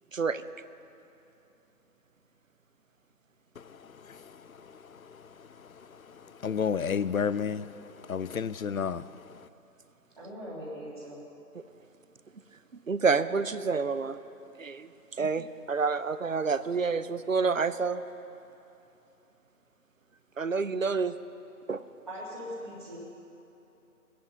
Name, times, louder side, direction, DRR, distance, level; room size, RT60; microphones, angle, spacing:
voice 1, 0.1-0.4 12.9-14.2 14.6-14.9 15.2-18.0 20.4-21.1 21.7-21.8, right 4 dB, 55° right, 0.6 m, -28 dB
voice 2, 3.6-9.5, left 6 dB, 65° left, 0.5 m, -33 dB
voice 3, 10.2-11.2 22.1-23.0, equal, 25° right, 2.4 m, -40 dB
20.5 x 10.0 x 5.4 m
figure-of-eight pair, 180°, 47 cm